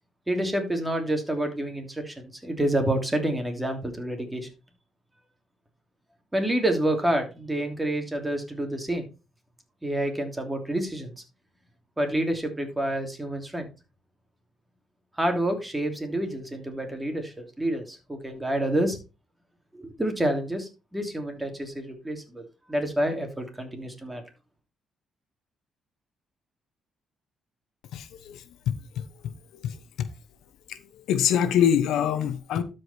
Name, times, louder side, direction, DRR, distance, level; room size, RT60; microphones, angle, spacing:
voice 1, 0.3-4.5 6.3-9.0 9.8-11.1 12.0-13.7 15.2-19.0 19.7-22.4 22.7-24.2, right 1 dB, 10° right, 2.9 m, -28 dB
voice 2, 27.9-28.4 28.7-29.0 30.0-30.1 31.1-32.6, left 9 dB, 80° left, 0.9 m, -24 dB
12.5 x 5.2 x 4.3 m
cardioid pair, 90°, 0 cm